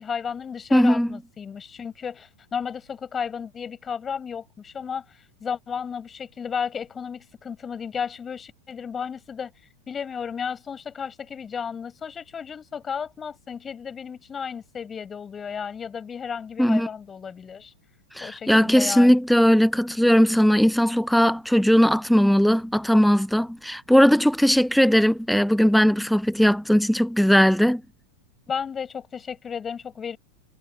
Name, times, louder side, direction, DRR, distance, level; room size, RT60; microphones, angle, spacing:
voice 1, 0.0-9.5 9.9-17.7 18.2-19.1 28.5-30.2, left 7 dB, 20° left, 7.6 m, -33 dB
voice 2, 0.7-1.2 16.6-16.9 18.2-27.8, equal, ahead, 0.7 m, -19 dB
figure-of-eight pair, 90°, 0 cm